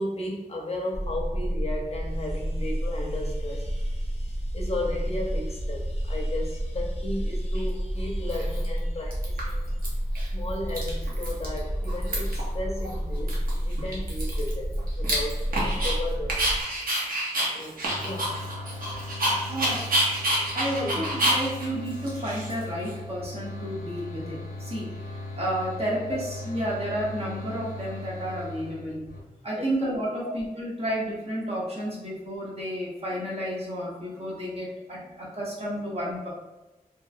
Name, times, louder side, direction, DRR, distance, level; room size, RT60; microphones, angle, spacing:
voice 1, 0.0-9.7 10.3-16.4 17.5-18.4 20.7-21.0 29.5-29.7 30.2-30.3, left 1 dB, 45° left, -2 dB, 0.6 m, -35 dB
sound 1, 0.9-16.6, equal, 5° right, 0.4 m, -30 dB
Dog, 7.6-7.7 8.3-8.8 9.1-9.9 10.2-10.3 10.5-11.6 11.8-12.5 12.9-13.0 13.3-16.0 16.3-22.9, right 1 dB, 70° right, 0.8 m, -28 dB
sound 2, 17.9-29.2, left 2 dB, 85° left, 0.6 m, -38 dB
voice 2, 19.5-19.9 20.5-29.0 29.4-36.3, equal, 45° right, -4 dB, 0.8 m, -31 dB
2.8 x 2.4 x 2.4 m, 1.1 s
wide cardioid pair, 95°, 15 cm